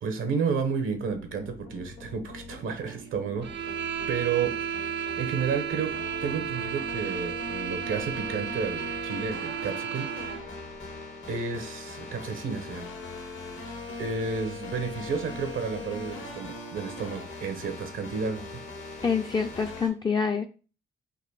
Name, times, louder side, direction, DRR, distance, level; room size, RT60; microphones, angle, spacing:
voice 1, 0.0-3.8 4.1-5.9 6.2-10.1 11.3-12.9 14.0-18.4, right 5 dB, 85° right, 7 dB, 1.0 m, -31 dB
sound 1, 0.9-19.9, left 3 dB, 80° left, 1.4 m, -41 dB
sound 2, 3.4-10.5, right 8 dB, 60° right, 0.5 m, -33 dB
voice 2, 19.0-20.5, left 5 dB, 20° left, 4 dB, 0.3 m, -26 dB
3.9 x 2.6 x 4.7 m, 0.36 s
cardioid pair, 75°, 20 cm